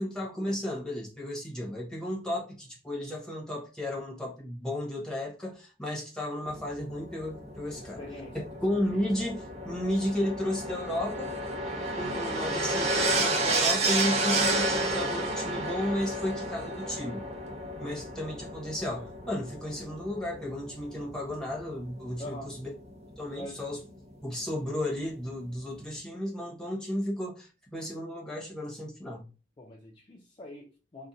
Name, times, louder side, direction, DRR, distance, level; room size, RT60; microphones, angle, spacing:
voice 1, 0.0-8.0 8.6-11.3 12.0-17.2 17.8-22.7 23.2-23.8 24.2-29.2, left 1 dB, 5° left, 0.9 m, -33 dB
sound 1, 6.5-22.9 23.9-24.0, right 2 dB, 40° right, 0.6 m, -31 dB
voice 2, 7.7-8.9 11.9-12.2 17.8-18.0 22.2-22.6 23.3-23.6 29.6-31.1, left 1 dB, 30° left, 0.4 m, -45 dB
2.6 x 2.1 x 3.8 m
head